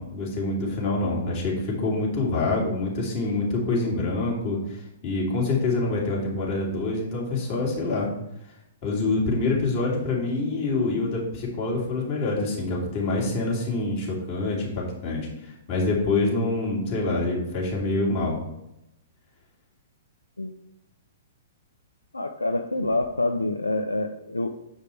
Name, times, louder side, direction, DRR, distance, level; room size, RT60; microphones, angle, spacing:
voice 1, 0.0-8.1 8.8-18.4, left 2 dB, 45° left, -3 dB, 3.0 m, -26 dB
voice 2, 22.1-24.5, left 2 dB, 90° left, 6 dB, 0.5 m, -26 dB
7.3 x 5.1 x 4.5 m, 0.85 s
figure-of-eight pair, 115°, 0 cm